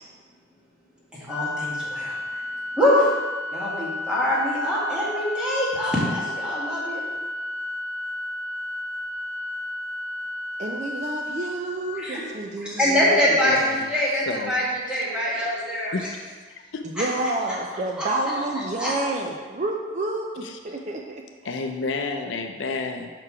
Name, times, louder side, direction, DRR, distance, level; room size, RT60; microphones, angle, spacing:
voice 1, 1.1-2.4 2.8-3.1 3.5-7.0 12.0-12.3 12.6-15.9 17.0-17.1 18.0-18.9, left 1 dB, 5° right, -8 dB, 1.6 m, -24 dB
Organ, 1.3-12.3, left 2 dB, 55° left, 1.1 m, -32 dB
voice 2, 10.6-13.5 16.8-21.2, right 2 dB, 35° right, 2 dB, 0.4 m, -29 dB
voice 3, 13.4-13.9 14.3-14.5 15.9-16.2 16.7-16.8 20.4-20.6 21.4-23.1, left 3 dB, 70° left, 5 dB, 0.5 m, -30 dB
6.0 x 4.7 x 4.9 m, 1.5 s
head